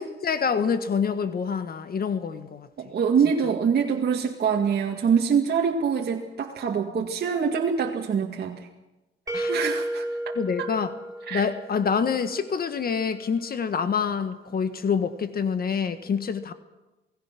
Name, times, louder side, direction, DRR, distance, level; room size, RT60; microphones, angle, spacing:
voice 1, 0.0-2.7 9.3-9.5 10.4-10.9 11.3-16.5, left 6 dB, 50° left, 10 dB, 1.6 m, -26 dB
voice 2, 2.8-8.7 9.5-10.7 11.3-11.5, right 6 dB, 55° right, 0 dB, 2.2 m, -25 dB
sound 1, 9.3-12.1, right 1 dB, 15° right, 3.5 m, -32 dB
28.0 x 18.5 x 6.0 m, 1.0 s
cardioid pair, 90°, 20 cm